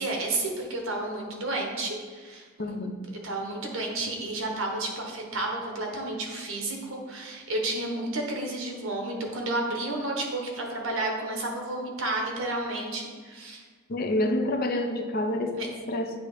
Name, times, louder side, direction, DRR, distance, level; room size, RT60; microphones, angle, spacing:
voice 1, 0.0-2.4 3.2-13.6 15.6-15.7, right 2 dB, 80° right, 1 dB, 1.2 m, -31 dB
voice 2, 2.6-3.0 13.9-16.2, left 1 dB, 50° left, 6 dB, 0.6 m, -28 dB
8.3 x 2.9 x 4.9 m, 1.5 s
head